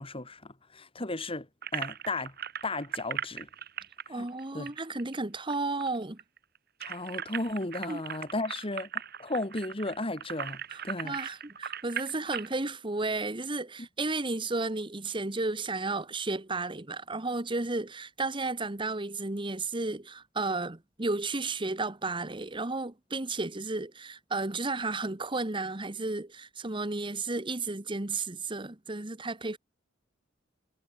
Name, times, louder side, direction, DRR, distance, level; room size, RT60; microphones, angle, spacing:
voice 1, 0.0-2.3 2.6-3.5 4.1-4.3 4.5-4.7 6.8-8.9 9.2-11.2, left 2 dB, 30° left, 3.0 m, -35 dB
sound 1, 1.6-5.5 5.8-5.9 6.2-12.5, right 8 dB, 55° right, 5.9 m, -38 dB
voice 2, 4.1-6.2 7.9-8.0 10.7-29.6, right 3 dB, 25° right, 1.4 m, -33 dB
head